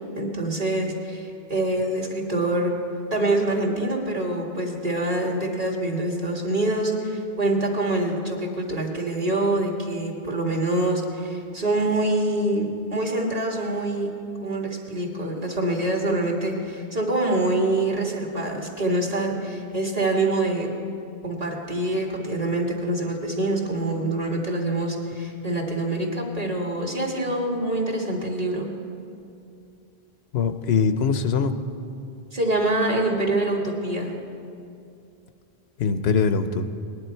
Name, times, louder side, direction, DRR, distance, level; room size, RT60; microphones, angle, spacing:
voice 1, 0.2-2.7 3.1-14.1 14.4-20.7 21.2-28.7 32.3-34.1, right 2 dB, 40° right, -1 dB, 1.8 m, -25 dB
voice 2, 30.3-31.5 35.8-36.7, left 5 dB, 85° left, 10 dB, 0.9 m, -22 dB
19.0 x 11.0 x 4.4 m, 2.5 s
omnidirectional pair, 1.0 m